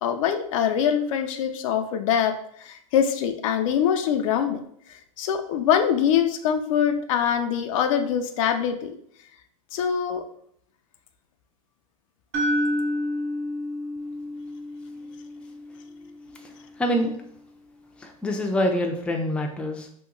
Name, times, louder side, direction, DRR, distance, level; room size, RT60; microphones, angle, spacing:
voice 1, 0.0-4.6 4.9-8.9 9.7-10.2, left 8 dB, 65° left, 7 dB, 0.4 m, -24 dB
sound 1, 12.3-16.4, left 1 dB, 40° right, 0.7 m, -29 dB
voice 2, 16.4-17.2 18.0-19.9, equal, 5° left, 2 dB, 0.4 m, -26 dB
2.9 x 2.1 x 3.7 m, 0.68 s
hypercardioid pair, 120°, 18 cm